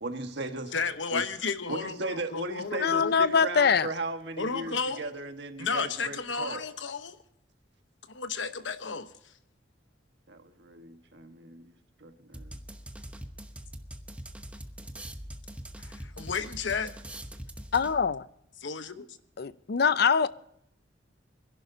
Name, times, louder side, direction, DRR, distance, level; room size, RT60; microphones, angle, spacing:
voice 1, 0.0-0.7 1.1-1.2 1.7-6.6 10.3-11.7 12.0-12.6, right 2 dB, 65° right, 1.5 m, -37 dB
voice 2, 0.7-3.1 4.4-5.0 5.6-7.2 8.1-9.1 15.8-16.9 18.6-19.1, left 5 dB, 85° left, 1.0 m, -33 dB
voice 3, 2.8-3.9 17.7-18.3 19.4-20.3, left 6 dB, 60° left, 0.5 m, -23 dB
sound 1, 12.3-18.2, right 1 dB, 5° right, 0.9 m, -43 dB
25.0 x 11.0 x 2.8 m
head